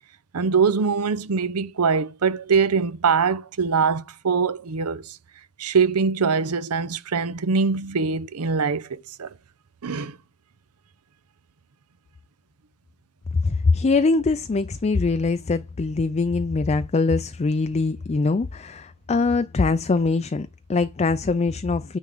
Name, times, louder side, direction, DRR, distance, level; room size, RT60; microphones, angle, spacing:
voice 1, 0.3-5.2 5.6-9.3 9.8-10.2, right 5 dB, 85° right, 0.7 m, -23 dB
voice 2, 13.3-22.0, left 3 dB, 30° left, 0.4 m, -23 dB
9.3 x 3.7 x 6.7 m
head